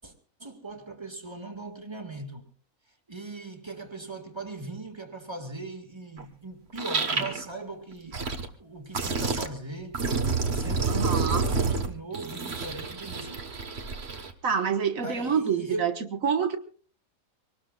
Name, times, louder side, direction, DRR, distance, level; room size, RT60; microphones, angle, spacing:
voice 1, 0.4-2.5 3.1-8.2 8.6-13.5 15.0-16.0, right 2 dB, 20° right, 2.0 m, -39 dB
sound 1, 6.2-6.3 6.8-7.5 7.9-8.5 8.9-9.5 9.9-14.3, right 4 dB, 50° right, 1.6 m, -29 dB
voice 2, 10.9-11.5 14.4-15.9 16.2-16.6, right 6 dB, 75° right, 1.9 m, -26 dB
24.0 x 19.0 x 2.4 m
omnidirectional pair, 1.4 m